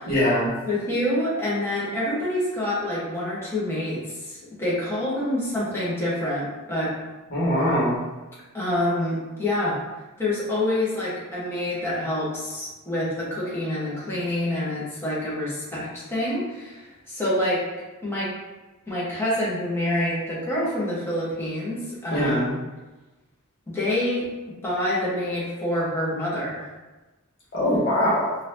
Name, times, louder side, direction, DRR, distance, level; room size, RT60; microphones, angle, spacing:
voice 1, 0.1-0.5 7.3-8.0 22.1-22.5 27.5-28.3, equal, 45° left, -7 dB, 1.4 m, -22 dB
voice 2, 0.7-6.9 8.5-9.8 10.2-17.6 18.0-18.3 18.9-22.6 23.7-26.7, left 1 dB, 10° left, -8 dB, 1.1 m, -27 dB
4.1 x 2.6 x 2.7 m, 1.1 s
head